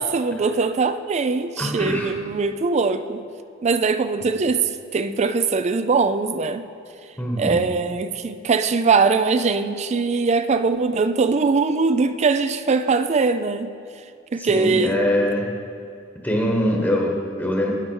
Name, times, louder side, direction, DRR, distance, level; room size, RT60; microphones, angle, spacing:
voice 1, 0.0-3.2 3.6-6.6 7.4-13.7 14.3-15.0, right 4 dB, 35° right, 11 dB, 0.4 m, -21 dB
voice 2, 1.6-2.1 4.2-4.3 7.2-7.6 14.4-15.5 16.2-17.7, left 1 dB, 10° left, -1 dB, 1.1 m, -23 dB
11.5 x 9.5 x 4.6 m, 2.5 s
head